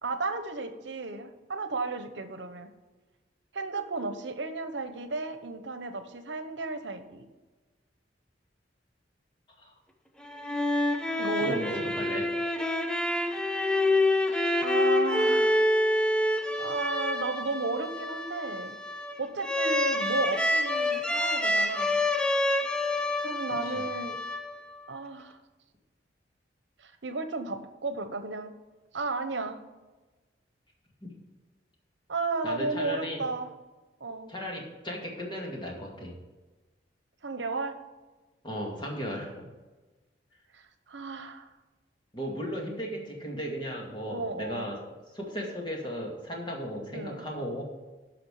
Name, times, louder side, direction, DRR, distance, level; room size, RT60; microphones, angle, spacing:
voice 1, 0.0-2.7 3.5-7.2 11.2-11.9 14.3-15.6 16.6-18.8 19.2-22.0 23.2-24.2 24.9-25.4 26.8-28.5 28.9-29.6 32.1-33.5 34.0-34.3 37.2-37.8 40.5-41.5 44.0-44.7 46.9-47.2, right 3 dB, 80° right, 9 dB, 0.9 m, -34 dB
sound 1, 10.2-24.8, left 1 dB, 5° left, 0.7 m, -27 dB
voice 2, 11.4-12.3 23.6-23.9 31.0-31.1 32.4-33.2 34.3-36.1 38.4-39.5 42.1-44.8 45.1-47.6, equal, 25° left, 0 dB, 2.1 m, -35 dB
11.0 x 5.9 x 4.9 m, 1.2 s
head